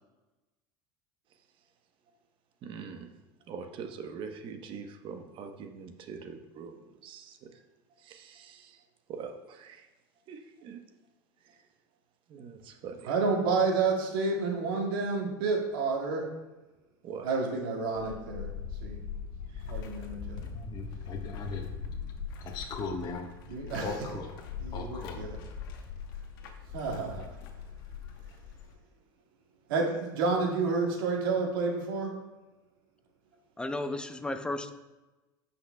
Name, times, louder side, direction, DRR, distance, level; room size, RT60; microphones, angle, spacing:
voice 1, 2.6-3.1 3.5-7.5 8.0-8.8 9.1-9.9 10.3-10.8 11.5-11.6 12.3-13.1 17.0-17.3 19.5-19.7, right 6 dB, 50° right, 6 dB, 1.0 m, -43 dB
voice 2, 13.0-16.3 17.2-18.5 18.8-19.0 19.7-20.4 23.5-24.0 24.6-25.4 26.7-27.4 29.7-32.2, right 4 dB, 80° right, 0 dB, 2.0 m, -30 dB
sound 1, 18.0-28.8, left 6 dB, 75° left, 1.1 m, -41 dB
voice 3, 20.4-21.7 22.4-23.3 23.8-24.3 24.7-25.2, left 4 dB, 40° left, 0 dB, 1.3 m, -38 dB
voice 4, 33.6-34.7, left 2 dB, 10° left, 7 dB, 0.7 m, -33 dB
15.0 x 5.7 x 2.3 m, 1.1 s
supercardioid pair, 100°, 11 cm